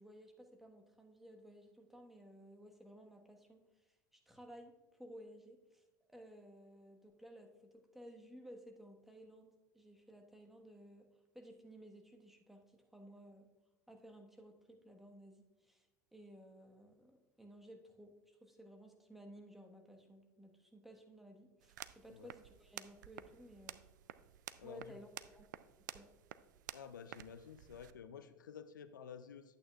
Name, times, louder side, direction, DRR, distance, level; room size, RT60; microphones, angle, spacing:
voice 1, 0.0-5.8 6.1-11.1 11.3-13.5 13.9-23.8 24.6-25.1 25.3-25.5 25.9-26.1, equal, ahead, 3 dB, 1.3 m, -57 dB
sound 1, 21.6-27.9, right 12 dB, 75° right, 0.4 m, -53 dB
voice 2, 24.6-25.0 26.7-29.6, left 7 dB, 85° left, 11 dB, 0.4 m, -52 dB
11.5 x 8.5 x 2.3 m, 1.1 s
hypercardioid pair, 80°, 10 cm